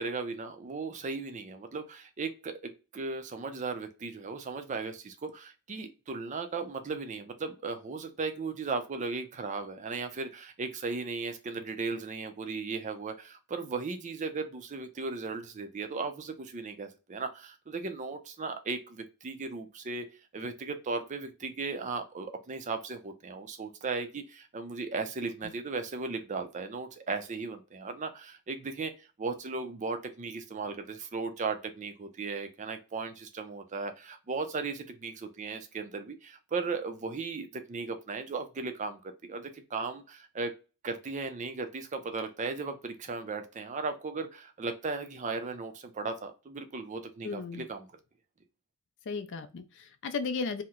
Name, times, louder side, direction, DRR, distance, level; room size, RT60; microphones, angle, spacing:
voice 1, 0.0-20.1 20.3-40.5 40.8-47.9, right 4 dB, 35° right, 0.4 m, -36 dB
voice 2, 47.2-47.7 49.1-50.6, left 4 dB, 55° left, 0.4 m, -35 dB
2.8 x 2.1 x 3.6 m
head